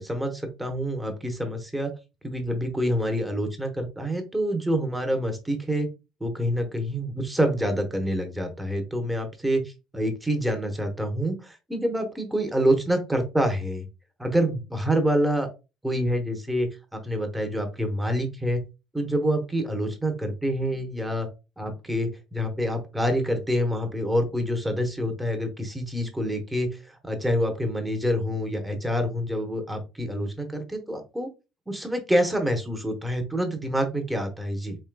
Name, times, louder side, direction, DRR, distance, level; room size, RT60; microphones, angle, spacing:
voice 1, 0.0-1.9 2.2-5.9 6.2-9.6 9.9-13.9 14.2-15.5 15.8-18.6 18.9-21.3 21.6-31.3 31.7-34.8, equal, 5° right, 4 dB, 1.0 m, -27 dB
4.6 x 3.0 x 2.3 m, 0.28 s
cardioid pair, 95°, 0 cm